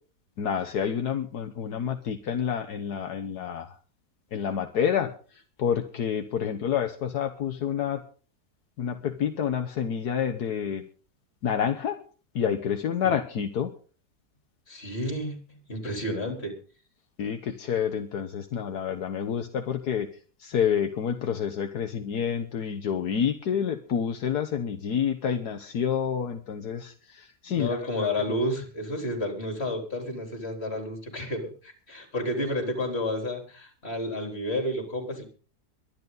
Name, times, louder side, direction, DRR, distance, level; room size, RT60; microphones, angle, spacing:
voice 1, 0.4-3.7 4.3-8.0 8.8-10.8 11.4-12.0 12.3-13.7 17.2-20.1 20.4-28.1, left 8 dB, 70° left, 6 dB, 1.6 m, -28 dB
voice 2, 14.7-16.5 27.5-35.2, left 1 dB, 40° left, 4 dB, 4.2 m, -31 dB
23.0 x 10.5 x 4.0 m, 0.40 s
omnidirectional pair, 1.8 m